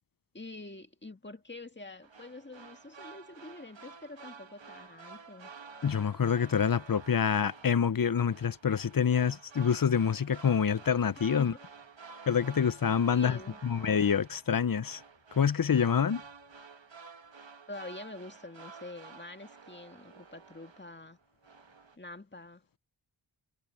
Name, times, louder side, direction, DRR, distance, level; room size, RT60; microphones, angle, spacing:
voice 1, 0.3-5.5 11.4-11.5 12.7-12.8 13.1-13.6 17.7-21.2 22.0-22.6, left 2 dB, 20° left, 1.9 m, -46 dB
sound 1, 2.0-21.1 21.4-22.0, right 5 dB, 65° right, 1.7 m, -51 dB
voice 2, 5.8-11.5 12.3-15.0 15.4-16.2, left 7 dB, 45° left, 0.7 m, -27 dB
wide cardioid pair, 45°, 48 cm